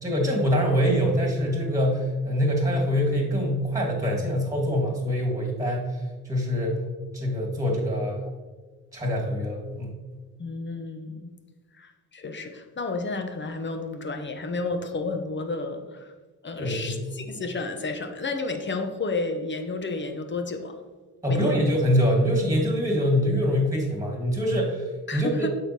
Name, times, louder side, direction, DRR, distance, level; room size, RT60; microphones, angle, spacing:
voice 1, 0.0-6.8 7.1-8.3 8.9-9.9 16.6-17.0 21.2-25.5, equal, 5° right, 0 dB, 2.1 m, -24 dB
voice 2, 10.4-11.3 11.7-16.1 16.4-20.8 21.3-21.6 25.1-25.5, left 3 dB, 25° left, 6 dB, 0.9 m, -31 dB
8.8 x 6.6 x 2.9 m, 1.3 s
figure-of-eight pair, 45°, 45 cm